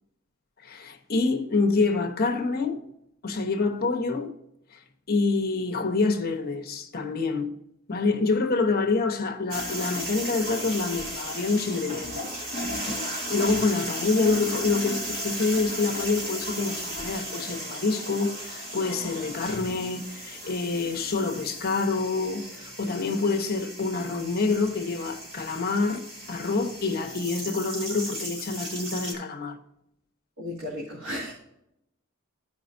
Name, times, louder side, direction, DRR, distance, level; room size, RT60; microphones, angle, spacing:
voice 1, 0.6-2.8 3.2-4.3 5.1-7.6 7.9-12.4 13.3-26.0 26.3-29.6, left 3 dB, 45° left, 1.0 m, -27 dB
sound 1, 9.5-29.1, equal, 45° right, 2.6 m, -35 dB
voice 2, 30.4-31.3, left 1 dB, 90° right, 2.5 m, -34 dB
15.0 x 5.1 x 2.6 m
head